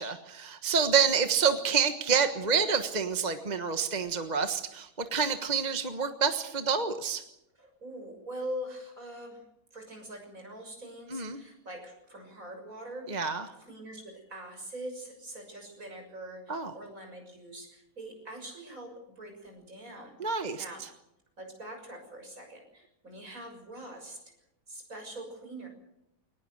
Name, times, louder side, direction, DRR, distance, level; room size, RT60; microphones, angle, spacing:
voice 1, 0.0-7.2 11.1-11.4 13.1-13.4 16.5-16.7 20.2-20.6, right 6 dB, 30° right, 7 dB, 1.4 m, -28 dB
voice 2, 7.5-9.4 9.7-18.9 19.2-20.8 21.4-24.2 24.7-25.7, right 1 dB, 60° right, 4 dB, 7.1 m, -43 dB
22.5 x 20.0 x 7.9 m, 0.82 s
omnidirectional pair, 1.6 m